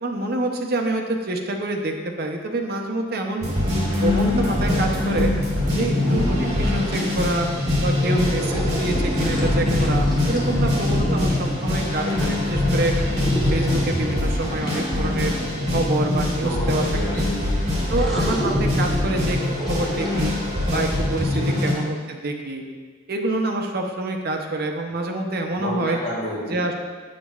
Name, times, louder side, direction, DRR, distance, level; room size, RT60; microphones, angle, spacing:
voice 1, 0.0-3.5 4.0-5.3 5.7-7.5 7.8-12.9 13.5-15.3 15.7-16.8 17.1-17.2 17.9-19.4 19.7-20.3 20.7-22.6 23.1-26.0 26.5-26.8, right 2 dB, 50° right, 3 dB, 0.6 m, -26 dB
sound 1, 3.4-21.7, left 1 dB, 35° right, 1.8 m, -23 dB
sound 2, 8.4-11.7 13.2-17.0 17.9-20.9, right 1 dB, ahead, 0.8 m, -32 dB
voice 2, 16.4-17.6 21.2-21.9 25.5-26.6, equal, 40° left, -6 dB, 1.9 m, -31 dB
7.3 x 7.1 x 2.3 m, 1.5 s
head